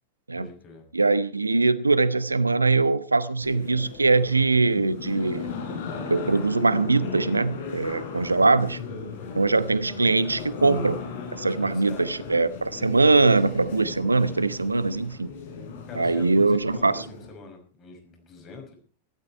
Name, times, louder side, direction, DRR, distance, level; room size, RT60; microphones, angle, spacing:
voice 1, 0.3-0.8 8.1-8.4 9.1-9.6 11.4-12.3 15.9-18.8, left 4 dB, 30° left, 5.9 m, -44 dB
voice 2, 0.9-5.5 6.1-8.8 9.3-11.0 11.3-15.3 16.0-17.0, right 3 dB, 80° right, 0.8 m, -22 dB
sound 1, 3.4-17.3, left 5 dB, 55° left, 4.7 m, -36 dB
15.5 x 13.0 x 4.5 m
figure-of-eight pair, 90°, 0 cm